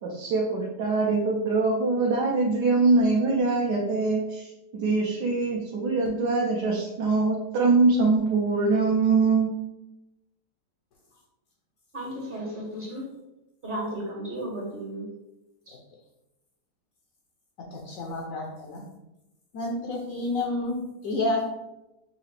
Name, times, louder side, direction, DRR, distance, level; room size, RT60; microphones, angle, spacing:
voice 1, 0.0-9.5, right 3 dB, 75° right, -2 dB, 1.2 m, -23 dB
voice 2, 11.9-13.0 13.6-15.1 15.7-15.8, right 1 dB, 40° right, -3 dB, 0.8 m, -34 dB
voice 3, 17.7-18.8 19.5-21.5, left 2 dB, 65° left, 0 dB, 0.9 m, -30 dB
5.7 x 2.4 x 3.1 m, 0.97 s
omnidirectional pair, 1.8 m